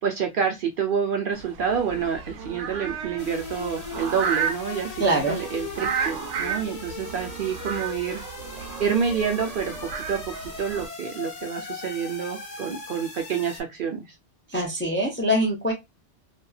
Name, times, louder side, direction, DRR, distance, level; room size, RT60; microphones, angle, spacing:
voice 1, 0.0-8.2 8.8-14.1, right 7 dB, 60° right, 0.6 m, -28 dB
sound 1, 1.3-10.9, right 7 dB, 85° right, 0.9 m, -33 dB
sound 2, 3.2-13.6, left 4 dB, 35° left, 0.9 m, -38 dB
voice 2, 5.0-5.4 14.5-15.7, right 1 dB, 15° left, 0.5 m, -23 dB
2.6 x 2.3 x 2.2 m
omnidirectional pair, 1.2 m